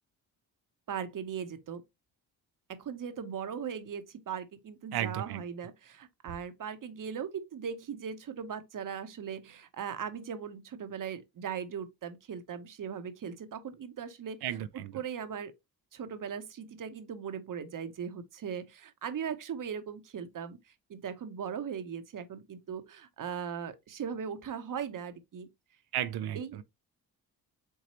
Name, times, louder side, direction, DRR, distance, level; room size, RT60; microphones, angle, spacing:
voice 1, 0.9-1.8 2.7-15.5 15.9-20.6 20.9-25.5 26.3-26.6, right 7 dB, 55° right, 1.0 m, -39 dB
voice 2, 4.9-5.4 14.4-14.9 25.9-26.6, right 11 dB, 70° right, 0.6 m, -34 dB
4.7 x 3.9 x 2.9 m
supercardioid pair, 65°, 39 cm